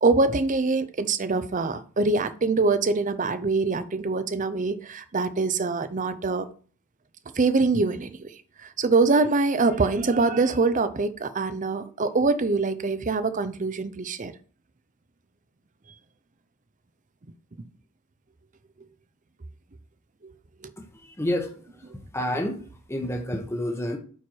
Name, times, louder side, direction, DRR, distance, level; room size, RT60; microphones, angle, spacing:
voice 1, 0.0-6.5 7.4-8.3 8.6-14.3, right 3 dB, 35° right, 0.6 m, -24 dB
voice 2, 20.8-22.6 22.9-24.0, left 1 dB, 10° left, 1.0 m, -30 dB
9.1 x 4.4 x 4.5 m
head